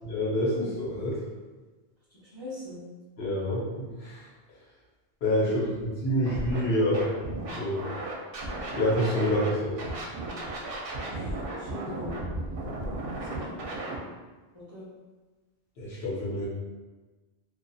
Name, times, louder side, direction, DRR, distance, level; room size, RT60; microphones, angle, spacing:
voice 1, 0.0-1.2 3.2-4.2 5.2-7.1 7.5-7.8 8.8-9.7 15.8-16.5, equal, 80° left, -5 dB, 1.1 m, -27 dB
voice 2, 2.1-2.8 5.4-5.7 11.1-12.2 13.0-13.5 14.5-14.9, left 1 dB, 30° left, -11 dB, 0.7 m, -43 dB
Scratching (performance technique), 6.2-6.6 6.9-9.5 9.8-14.0, right 2 dB, 70° right, 0.8 m, -35 dB
2.6 x 2.5 x 2.3 m, 1.3 s
omnidirectional pair, 1.0 m